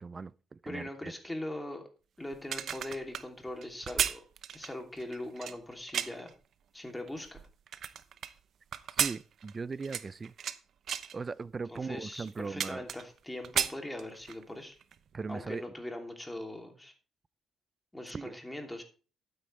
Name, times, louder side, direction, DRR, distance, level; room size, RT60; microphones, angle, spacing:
voice 1, 0.0-1.1 9.0-10.3 11.1-12.9 15.1-15.6 18.1-18.3, right 4 dB, 30° right, 0.5 m, -39 dB
voice 2, 0.7-1.8 2.2-4.2 4.5-6.3 6.7-7.4 11.7-14.8 15.3-16.9 17.9-18.8, left 1 dB, 10° left, 2.9 m, -41 dB
sound 1, 2.3-6.3 6.9-8.3 8.7-10.6 10.9-11.2 11.8-11.9 12.1-13.2 13.4-14.4 14.8-15.0, right 8 dB, 65° right, 0.8 m, -34 dB
12.0 x 9.3 x 3.3 m
cardioid pair, 90°, 0 cm